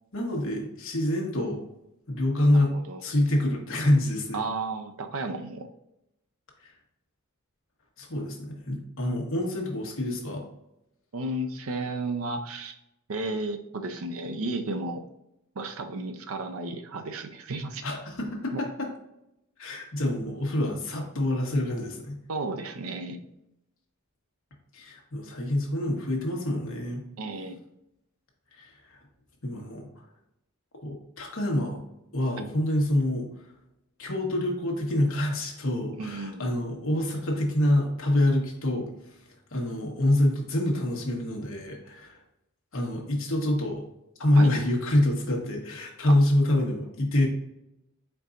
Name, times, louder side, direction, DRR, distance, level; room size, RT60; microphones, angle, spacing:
voice 1, 0.1-1.6 2.1-2.7 3.0-4.4 8.0-10.4 17.8-18.9 19.6-22.2 24.7-27.0 28.6-29.0 29.4-29.9 30.8-31.8 32.1-33.3 34.0-38.9 39.5-42.2 42.7-43.8 44.2-47.3, left 1 dB, 60° left, 0 dB, 1.2 m, -26 dB
voice 2, 2.5-3.0 4.3-5.7 11.1-12.8 13.1-15.0 15.6-17.8 18.5-18.6 22.3-23.2 27.2-27.6 32.4-32.5 36.0-36.5 44.4-44.5 46.1-46.2, right 2 dB, 70° right, 6 dB, 0.5 m, -33 dB
4.5 x 3.9 x 2.5 m, 0.84 s
head